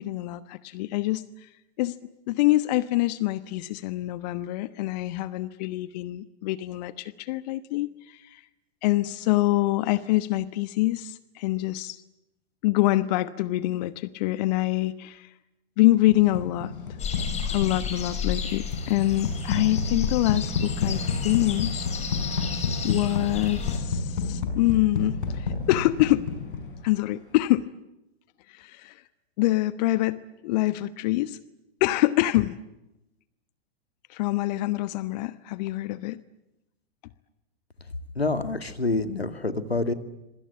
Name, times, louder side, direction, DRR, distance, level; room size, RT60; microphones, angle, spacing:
voice 1, 0.0-1.5 1.8-1.9 2.3-8.4 8.8-12.0 12.6-15.3 15.8-16.7 17.5-21.9 22.3-22.4 22.8-26.3 26.8-27.7 28.5-29.0 29.4-30.2 30.4-31.4 31.8-32.6 34.1-36.2, left 17 dB, 45° left, 15 dB, 1.2 m, -25 dB
sound 1, 16.1-27.0, left 4 dB, 60° left, 5.9 m, -30 dB
sound 2, 17.0-23.8, left 7 dB, 20° left, 5.6 m, -33 dB
voice 2, 38.2-39.9, left 3 dB, 85° left, 10 dB, 2.2 m, -27 dB
26.5 x 24.5 x 8.3 m, 0.90 s
figure-of-eight pair, 95°, 30 cm